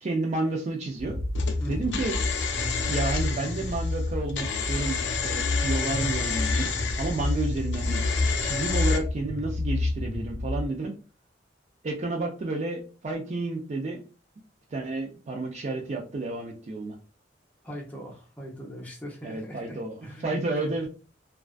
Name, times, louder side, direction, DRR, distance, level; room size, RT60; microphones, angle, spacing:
voice 1, 0.0-1.2 1.7-2.2 2.9-6.7 7.0-8.0 8.4-10.9 11.8-14.0 14.7-16.9 19.2-20.9, right 2 dB, 40° right, 2 dB, 0.4 m, -31 dB
sound 1, 1.0-10.6, left 2 dB, 25° left, 1.1 m, -29 dB
sound 2, 1.4-9.0, left 6 dB, 70° left, 0.5 m, -31 dB
voice 2, 1.6-2.0 17.6-20.4, equal, 10° left, -3 dB, 0.7 m, -41 dB
2.4 x 2.2 x 2.4 m, 0.34 s
head